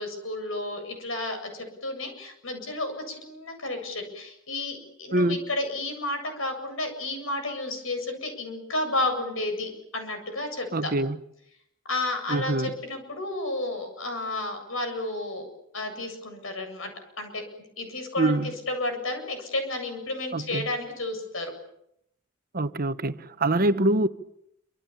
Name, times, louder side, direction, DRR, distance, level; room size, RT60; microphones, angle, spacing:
voice 1, 0.0-10.9 11.9-15.5 15.7-17.4 17.8-21.5 23.5-23.8, left 2 dB, 85° left, 7.8 m, -32 dB
voice 2, 10.7-11.2 12.3-12.7 18.2-18.5 20.3-20.6 22.5-24.1, right 2 dB, 45° right, 1.1 m, -24 dB
27.5 x 26.0 x 7.3 m
head